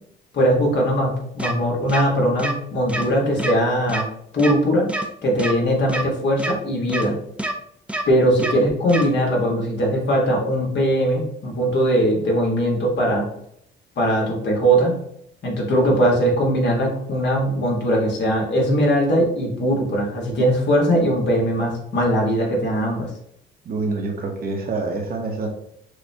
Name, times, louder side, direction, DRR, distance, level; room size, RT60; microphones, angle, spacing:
voice 1, 0.3-4.0 4.3-4.9 5.2-7.2 8.1-13.2 14.0-14.9 15.4-23.1, equal, 60° left, -1 dB, 1.5 m, -20 dB
sound 1, 1.4-1.5 1.9-2.0 2.4-2.5 2.9-3.1 3.4-3.5 3.9-4.0 4.4-4.5 4.9-5.1 5.4-5.5 5.9-6.0 6.4-6.5 6.9-7.1 7.4-7.5 7.9-8.0 8.4-8.5 8.9-9.1, right 1 dB, 5° right, 0.5 m, -25 dB
voice 2, 23.6-25.5, right 3 dB, 50° right, 2 dB, 0.9 m, -26 dB
6.4 x 2.3 x 2.8 m, 0.70 s
cardioid pair, 90°, 20 cm